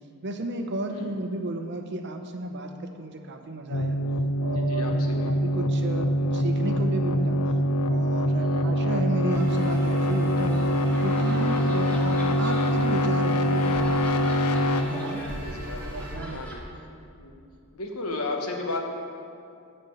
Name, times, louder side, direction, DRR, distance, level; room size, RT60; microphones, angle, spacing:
voice 1, 0.2-4.0 4.4-7.4 7.9-10.7 11.0-15.2 15.8-16.4, right 1 dB, 50° right, 5 dB, 0.7 m, -33 dB
sound 1, 3.7-14.8, equal, 90° left, 0.6 m, -24 dB
voice 2, 4.5-5.3 8.3-8.8 11.5-11.9 15.3-16.6 17.2-17.4 17.7-18.8, left 2 dB, 70° left, 2 dB, 1.2 m, -35 dB
sound 2, 9.3-16.2, equal, 15° right, 2.3 m, -42 dB
sound 3, 9.5-16.6, equal, 5° left, 1.1 m, -40 dB
10.5 x 4.4 x 7.7 m, 2.5 s
head